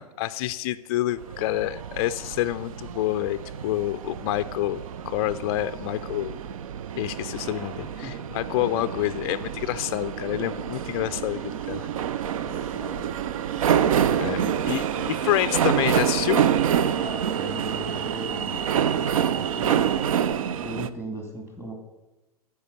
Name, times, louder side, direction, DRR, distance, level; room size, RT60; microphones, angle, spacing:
voice 1, 0.0-6.4 7.0-11.9 14.2-16.5, left 15 dB, 45° left, 11 dB, 0.4 m, -28 dB
sound 1, 1.2-20.9, right 9 dB, 60° right, 0.6 m, -27 dB
voice 2, 12.4-13.2 14.0-15.1 16.9-19.9 20.6-21.7, right 1 dB, 10° right, 2 dB, 2.2 m, -37 dB
11.5 x 4.8 x 6.6 m, 1.0 s
hypercardioid pair, 110°, 19 cm